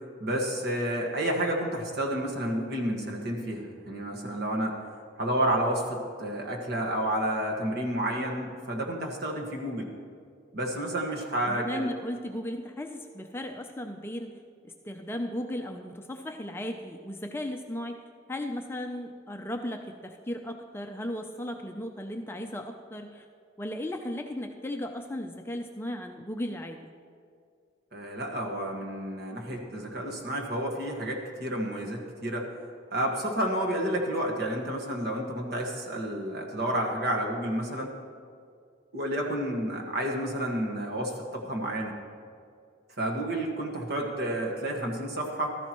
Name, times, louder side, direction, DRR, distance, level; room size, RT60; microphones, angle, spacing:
voice 1, 0.2-4.8 5.2-9.9 10.5-11.9 27.9-32.5 32.9-37.9 38.9-41.9 43.0-45.6, right 1 dB, 55° right, 0 dB, 1.7 m, -30 dB
voice 2, 11.4-14.4 14.6-17.9 18.3-23.2 23.6-26.8, left 1 dB, 10° left, 4 dB, 0.5 m, -36 dB
15.0 x 13.5 x 3.1 m, 2.3 s
head